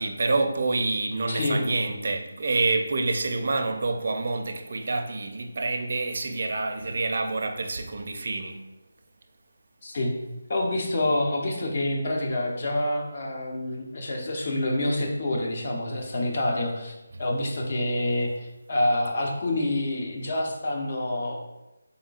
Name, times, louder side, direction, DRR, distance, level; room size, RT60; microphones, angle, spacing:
voice 1, 0.0-8.7 17.1-17.2, right 3 dB, 55° right, 0.5 m, -27 dB
voice 2, 1.3-1.7 9.8-10.1 10.5-16.9 17.2-21.4, left 1 dB, 45° left, 0.8 m, -27 dB
4.0 x 3.6 x 2.4 m
figure-of-eight pair, 165°, 0 cm